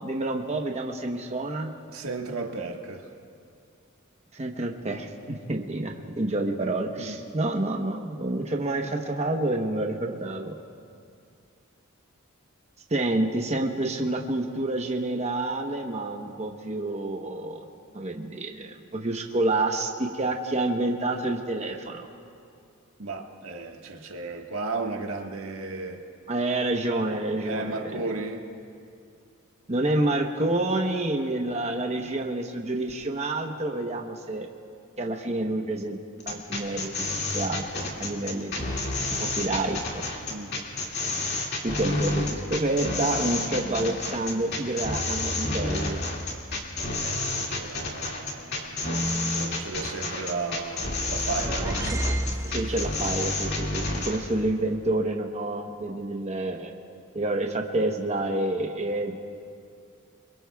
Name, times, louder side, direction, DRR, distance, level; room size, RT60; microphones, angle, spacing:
voice 1, 0.0-1.7 4.3-10.5 12.9-17.6 17.9-22.1 26.3-28.0 29.7-34.5 35.0-36.0 36.3-36.9 37.3-38.7 39.1-40.2 41.6-46.0 52.4-56.7 57.1-59.2, right 2 dB, 30° right, 2 dB, 1.0 m, -28 dB
voice 2, 1.9-3.1 7.0-7.1 23.0-26.0 27.4-28.5 40.3-40.6 47.0-51.8 53.8-54.1, right 3 dB, 90° right, 2 dB, 1.5 m, -35 dB
sound 1, 36.2-54.2, left 2 dB, 50° left, 2.2 m, -29 dB
sound 2, 51.0-53.3, right 1 dB, 15° right, 0.5 m, -33 dB
27.5 x 22.5 x 2.3 m, 2.4 s
head